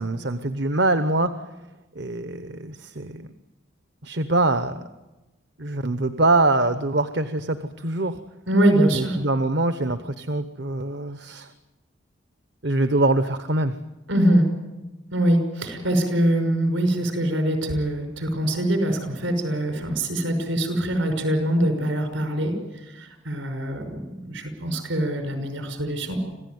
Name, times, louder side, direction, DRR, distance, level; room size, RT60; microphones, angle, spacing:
voice 1, 0.0-1.3 1.9-3.2 4.0-4.9 5.6-8.2 8.9-11.5 12.6-13.7, right 2 dB, 60° right, 10 dB, 1.0 m, -24 dB
voice 2, 8.5-9.2 14.1-14.5 15.1-22.6 22.9-26.2, right 1 dB, 75° right, 6 dB, 5.9 m, -23 dB
26.5 x 16.0 x 9.5 m, 1.1 s
head